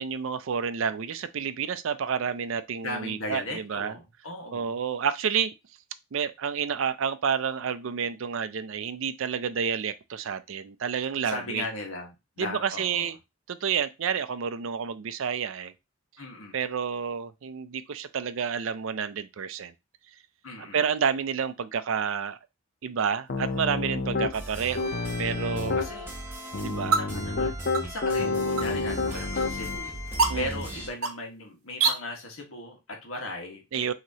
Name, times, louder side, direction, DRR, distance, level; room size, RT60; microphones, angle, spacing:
voice 1, 0.0-3.9 4.5-5.5 6.1-11.6 12.4-13.2 13.5-15.7 16.5-19.7 20.7-22.4 22.8-25.8 26.6-27.0 30.3-30.5 33.7-33.9, right 7 dB, 70° right, 0.4 m, -29 dB
voice 2, 2.8-4.7 11.2-13.1 16.2-16.5 20.4-20.8 25.6-26.1 27.0-29.9 30.3-33.9, left 2 dB, 75° left, 1.4 m, -37 dB
Piano, 23.3-24.3 24.8-25.9 26.5-29.8, left 3 dB, 50° left, 0.6 m, -29 dB
sound 1, 23.3-31.9, right 4 dB, 85° right, 0.9 m, -33 dB
sound 2, 24.3-30.9, equal, 10° right, 1.0 m, -37 dB
6.0 x 2.9 x 2.8 m
head